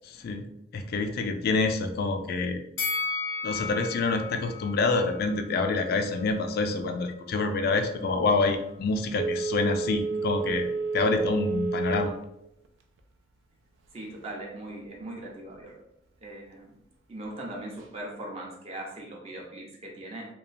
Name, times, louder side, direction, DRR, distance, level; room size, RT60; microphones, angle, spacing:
voice 1, 0.7-2.6 3.4-10.7 10.9-12.1, left 3 dB, 55° left, 6 dB, 0.3 m, -27 dB
Bell, 2.8-6.0 6.3-6.4, left 4 dB, 85° left, 0.7 m, -34 dB
Telephone, 9.1-12.2 12.6-12.7, right 4 dB, 85° right, 0.3 m, -30 dB
voice 2, 13.9-15.7 16.2-16.7 17.1-20.3, right 1 dB, 35° right, -1 dB, 0.5 m, -40 dB
3.0 x 2.2 x 2.5 m, 0.81 s
head